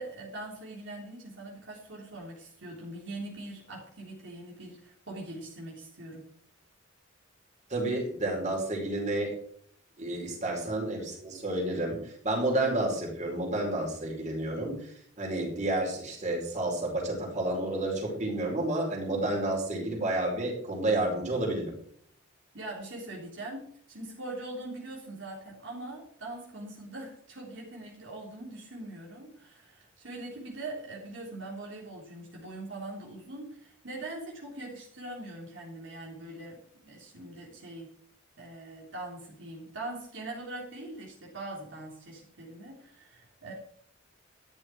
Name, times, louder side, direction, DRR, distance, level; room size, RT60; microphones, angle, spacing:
voice 1, 0.0-6.2 22.5-37.9 38.4-43.5, right 2 dB, 65° right, -4 dB, 3.8 m, -42 dB
voice 2, 7.7-9.3 10.0-14.9 15.2-21.7, right 1 dB, 35° right, -1 dB, 5.0 m, -30 dB
13.0 x 11.0 x 4.7 m, 0.62 s
head